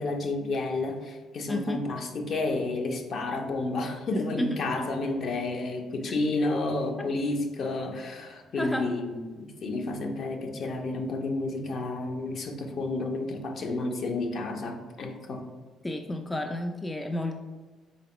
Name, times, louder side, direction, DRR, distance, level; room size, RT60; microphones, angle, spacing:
voice 1, 0.0-15.4, left 2 dB, 55° left, 3 dB, 0.6 m, -31 dB
voice 2, 1.5-1.9 4.4-4.7 6.0-6.1 7.0-7.1 8.6-8.9 15.8-17.4, left 1 dB, 15° left, 5 dB, 0.3 m, -31 dB
4.1 x 3.4 x 2.9 m, 1.3 s
supercardioid pair, 65°, 0 cm